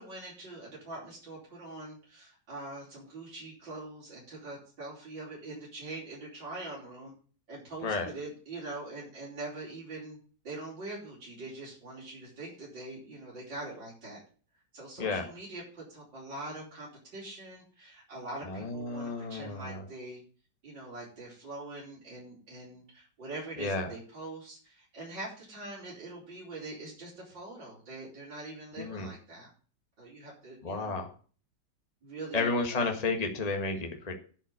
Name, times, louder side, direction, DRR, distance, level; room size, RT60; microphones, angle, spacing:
voice 1, 0.0-7.1 7.5-10.2 10.4-14.2 14.7-20.2 20.6-29.5 30.0-31.0 32.0-33.0, right 2 dB, 80° right, -7 dB, 5.2 m, -43 dB
voice 2, 18.4-19.8 23.6-23.9 28.8-29.1 30.6-31.1 32.3-34.2, left 3 dB, 20° left, 3 dB, 1.7 m, -32 dB
11.0 x 5.9 x 8.6 m, 0.41 s
omnidirectional pair, 1.9 m